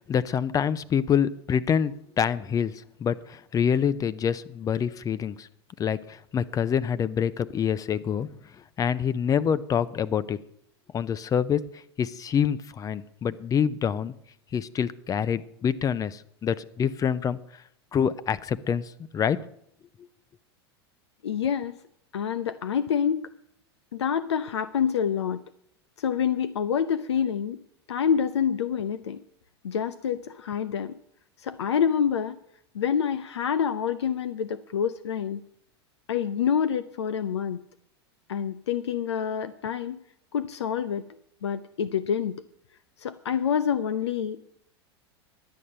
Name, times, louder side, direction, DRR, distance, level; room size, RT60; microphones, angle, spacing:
voice 1, 0.0-2.7 3.0-5.5 5.8-8.3 8.8-10.4 10.9-11.6 12.0-14.1 14.5-17.4 17.9-19.4, left 8 dB, 25° left, 17 dB, 0.6 m, -26 dB
voice 2, 21.2-21.8 22.1-23.2 23.9-25.4 26.0-27.6 27.9-29.2 29.6-31.0 31.4-32.4 32.7-35.4 36.1-37.6 38.3-40.0 40.3-41.1 41.4-42.4 43.0-44.5, left 8 dB, 90° left, 12 dB, 0.5 m, -27 dB
11.0 x 8.6 x 6.8 m, 0.72 s
hypercardioid pair, 105°, 14 cm